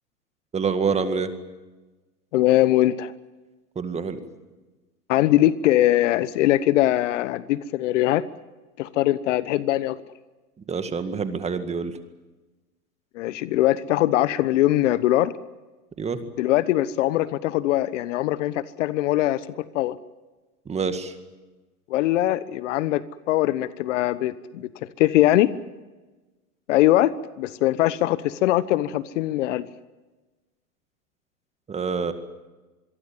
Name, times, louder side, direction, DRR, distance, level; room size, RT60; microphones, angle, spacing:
voice 1, 0.5-1.3 3.8-4.2 10.7-11.9 16.0-16.2 20.7-21.1 31.7-32.1, right 5 dB, 15° right, 9 dB, 2.0 m, -26 dB
voice 2, 2.3-3.1 5.1-8.3 8.8-10.0 13.1-15.4 16.4-20.0 21.9-25.5 26.7-29.7, left 15 dB, 50° left, 16 dB, 1.1 m, -22 dB
26.0 x 23.0 x 7.3 m, 1.2 s
hypercardioid pair, 120°, 45 cm